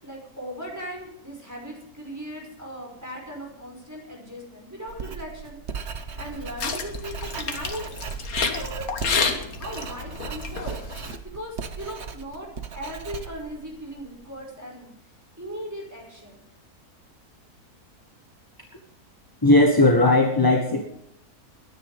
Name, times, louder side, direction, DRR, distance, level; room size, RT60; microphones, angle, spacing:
voice 1, 0.0-5.6 6.2-7.9 8.3-10.8 11.3-14.9 15.4-16.5, equal, 10° right, 0 dB, 5.5 m, -38 dB
Writing, 4.9-14.3, right 6 dB, 50° right, 1.3 m, -37 dB
sound 1, 6.1-11.2, left 5 dB, 70° left, 1.9 m, -30 dB
voice 2, 19.4-20.8, left 2 dB, 15° left, 2 dB, 1.5 m, -17 dB
22.0 x 10.5 x 4.9 m, 0.76 s
omnidirectional pair, 1.6 m